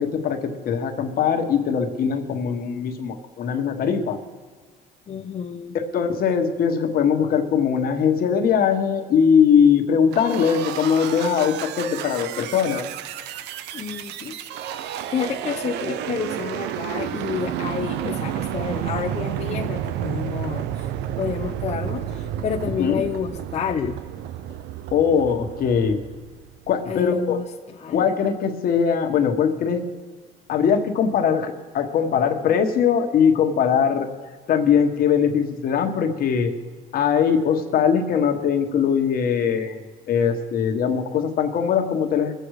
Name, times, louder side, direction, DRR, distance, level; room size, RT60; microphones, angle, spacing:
voice 1, 0.0-4.2 5.9-12.9 22.8-23.0 24.9-26.0 26.7-27.4 27.9-29.8 30.5-34.1 34.5-36.5 36.9-39.8 40.1-42.3, left 7 dB, 60° left, 5 dB, 1.5 m, -21 dB
voice 2, 5.1-5.7 13.7-14.5 15.1-20.9 21.2-24.0 26.9-27.4 27.8-28.1, left 7 dB, 40° left, 1 dB, 0.9 m, -29 dB
sound 1, 10.1-26.7, right 10 dB, 90° right, 0.7 m, -31 dB
22.0 x 8.0 x 4.9 m, 1.5 s
cardioid pair, 110°, 17 cm